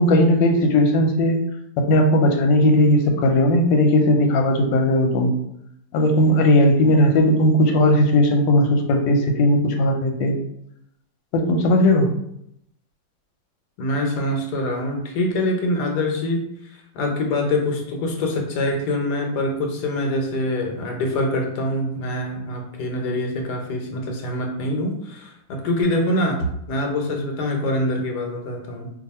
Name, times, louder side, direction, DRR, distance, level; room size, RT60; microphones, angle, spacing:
voice 1, 0.0-1.4 1.9-5.3 5.9-10.3 11.3-12.1, left 1 dB, 85° left, 4 dB, 1.3 m, -17 dB
voice 2, 13.8-28.9, left 1 dB, 65° left, 2 dB, 1.2 m, -25 dB
2.7 x 2.7 x 4.1 m, 0.76 s
omnidirectional pair, 2.0 m